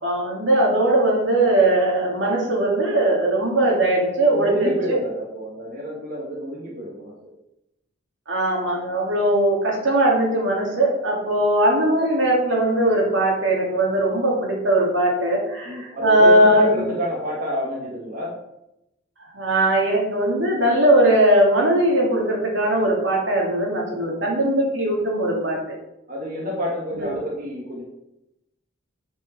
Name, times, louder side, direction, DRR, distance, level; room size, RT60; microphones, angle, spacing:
voice 1, 0.0-5.0 8.3-16.8 19.3-25.6 26.9-27.1, right 1 dB, 70° right, -2 dB, 2.6 m, -19 dB
voice 2, 4.3-7.3 15.7-18.3 23.9-24.1 26.1-27.8, equal, 45° right, -4 dB, 1.8 m, -29 dB
8.1 x 5.0 x 5.4 m, 0.87 s
head